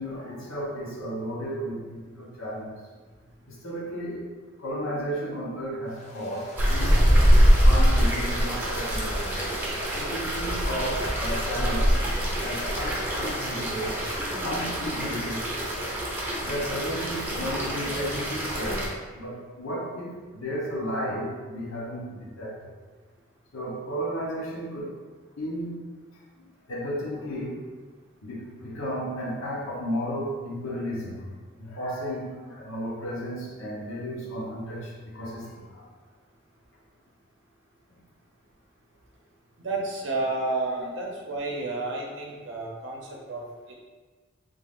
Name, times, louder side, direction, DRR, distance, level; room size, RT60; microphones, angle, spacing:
voice 1, 0.0-2.8 3.5-4.3 4.6-9.4 9.9-11.9 12.4-14.0 14.4-15.5 16.4-22.6 23.5-25.0 25.4-25.8 26.7-27.6 28.2-31.3 31.6-35.8 40.7-40.9, equal, 90° left, -4 dB, 1.0 m, -33 dB
sound 1, 5.9-14.2, left 1 dB, 35° left, 0.6 m, -41 dB
sound 2, 6.6-18.9, equal, 10° right, 0.6 m, -24 dB
voice 2, 39.6-43.0 43.3-43.4, right 2 dB, 65° right, -2 dB, 0.6 m, -30 dB
3.5 x 2.4 x 3.6 m, 1.4 s
head